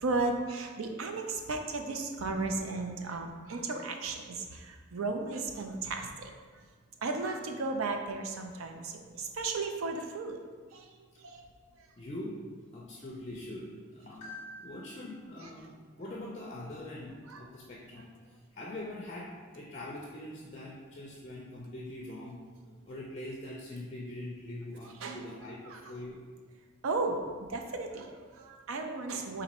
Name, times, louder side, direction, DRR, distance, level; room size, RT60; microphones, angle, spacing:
voice 1, 0.0-6.3 7.0-10.4 10.7-10.8 11.2-11.4 15.6-15.7 17.3-17.4 25.0-25.2 25.7-25.8 26.8-29.4, right 3 dB, 75° right, 4 dB, 0.5 m, -35 dB
voice 2, 12.0-22.4 22.9-26.2, left 1 dB, 30° left, -3 dB, 0.4 m, -43 dB
4.1 x 2.6 x 4.1 m, 1.5 s
head